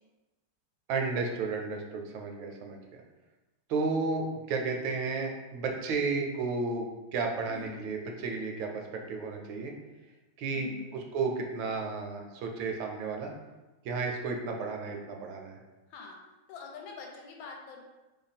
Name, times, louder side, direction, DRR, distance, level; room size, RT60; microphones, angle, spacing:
voice 1, 0.9-2.8 3.7-9.7 10.4-13.3 13.8-15.6, right 4 dB, 75° right, 2 dB, 1.3 m, -33 dB
voice 2, 7.5-7.8 10.5-11.0 15.9-16.2 16.5-17.8, left 5 dB, 75° left, 0 dB, 1.4 m, -45 dB
3.3 x 2.2 x 4.1 m, 1.1 s
omnidirectional pair, 2.3 m